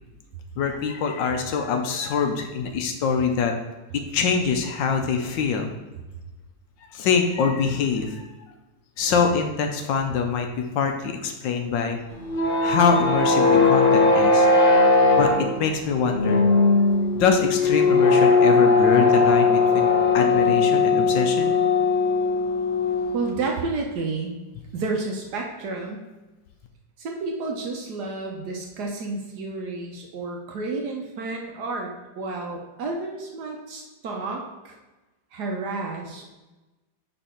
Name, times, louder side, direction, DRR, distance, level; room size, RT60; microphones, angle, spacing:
voice 1, 0.6-3.5 3.9-5.7 6.9-8.2 9.0-12.0 12.6-14.5 15.1-16.4 17.1-19.9 20.1-21.6, left 6 dB, 75° left, 4 dB, 1.3 m, -24 dB
sound 1, 12.1-23.3, left 3 dB, 60° left, 0.5 m, -19 dB
voice 2, 23.1-24.3 24.7-26.0 27.0-34.7 35.3-36.3, right 3 dB, 65° right, 1 dB, 1.2 m, -31 dB
5.5 x 4.3 x 4.3 m, 1.1 s
omnidirectional pair, 2.2 m